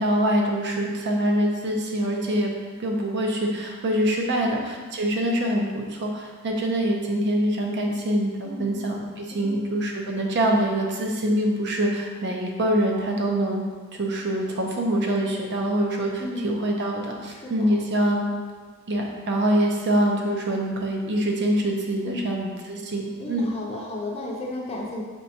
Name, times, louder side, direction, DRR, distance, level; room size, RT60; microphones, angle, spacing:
voice 1, 0.0-2.5 2.8-13.6 13.9-18.3 18.9-23.5, right 1 dB, 50° right, 0 dB, 0.5 m, -25 dB
voice 2, 4.4-4.7 8.4-8.7 9.3-9.5 16.2-16.5 17.3-17.7 22.0-22.3 23.2-25.0, left 1 dB, 25° left, -2 dB, 0.5 m, -34 dB
4.3 x 3.3 x 2.7 m, 1.5 s
head